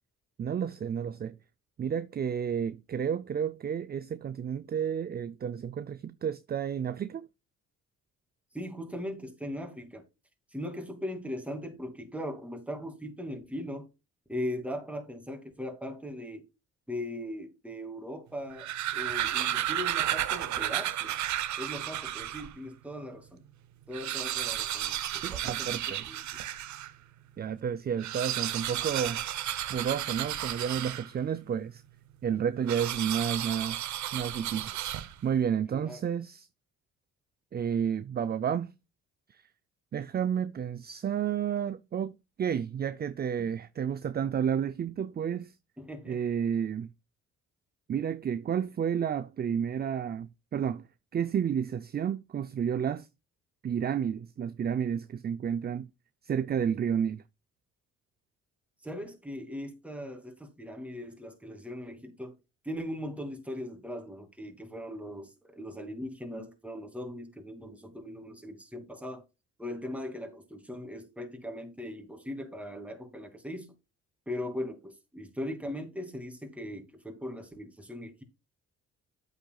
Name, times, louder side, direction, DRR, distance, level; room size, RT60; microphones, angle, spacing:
voice 1, 0.4-1.4 1.8-7.3 25.2-26.1 27.4-29.2 29.7-31.8 32.2-34.7 35.2-36.5 37.5-38.7 39.3-39.4 39.9-45.5 46.1-46.9 47.9-50.9 51.1-53.1 53.6-55.9 56.2-57.2, right 8 dB, 35° right, 0.5 m, -31 dB
voice 2, 8.5-10.0 10.5-13.9 14.3-16.4 16.9-21.2 21.6-23.4 23.9-26.2 35.7-36.0 45.8-46.2 58.8-62.4 62.6-69.2 69.6-73.7 74.3-78.2, left 1 dB, 5° right, 2.6 m, -39 dB
sound 1, 18.4-22.6 23.1-23.2 23.4-23.5 23.8-27.0 27.9-31.4 32.7-35.4, right 12 dB, 70° right, 0.9 m, -33 dB
9.0 x 8.2 x 2.4 m
cardioid pair, 90°, 30 cm